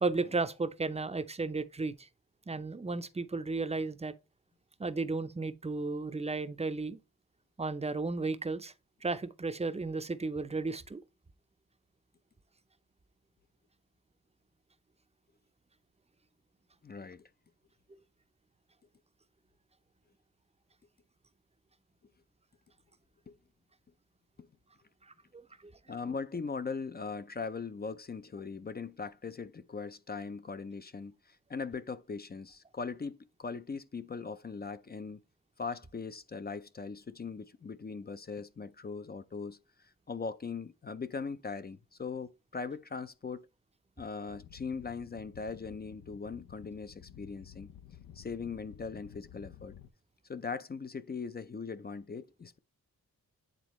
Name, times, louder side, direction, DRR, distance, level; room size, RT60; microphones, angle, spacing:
voice 1, 0.0-2.1 2.5-4.1 4.8-7.0 7.6-8.7 9.0-11.0 25.3-25.7, right 3 dB, 20° right, 0.6 m, -34 dB
voice 2, 16.8-17.3 23.3-23.4 24.4-24.5 25.9-35.2 35.6-43.5 44.0-47.7 48.2-49.7 50.3-52.6, left 5 dB, 30° left, 0.4 m, -40 dB
sound 1, 44.3-49.9, left 10 dB, 85° left, 0.7 m, -53 dB
9.0 x 3.8 x 3.1 m
cardioid pair, 75°, 35 cm